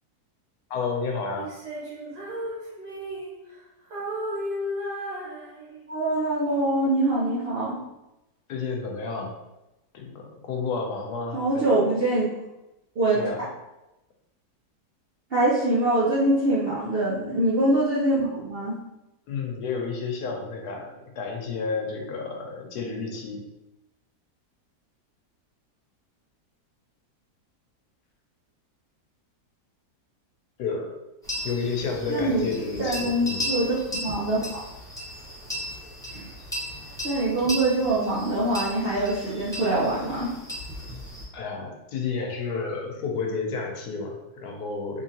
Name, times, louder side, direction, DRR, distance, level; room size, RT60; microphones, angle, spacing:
voice 1, 0.7-1.5 8.5-9.4 9.9-11.7 13.1-13.5 19.3-23.4 30.6-30.9 31.4-33.5 41.3-45.0, left 4 dB, 75° left, 2 dB, 1.2 m, -31 dB
Female singing, 1.4-3.6 3.9-6.0, equal, 80° right, 1.9 m, -34 dB
voice 2, 5.9-7.8 11.3-12.3 13.0-13.2 15.3-18.8 32.1-32.5 32.8-33.7 34.0-34.7 36.1-36.3 37.0-40.3, right 1 dB, 55° right, -7 dB, 0.7 m, -24 dB
sound 1, 31.2-41.2, equal, 5° left, 0.6 m, -36 dB
3.7 x 3.1 x 2.8 m, 0.95 s
omnidirectional pair, 1.8 m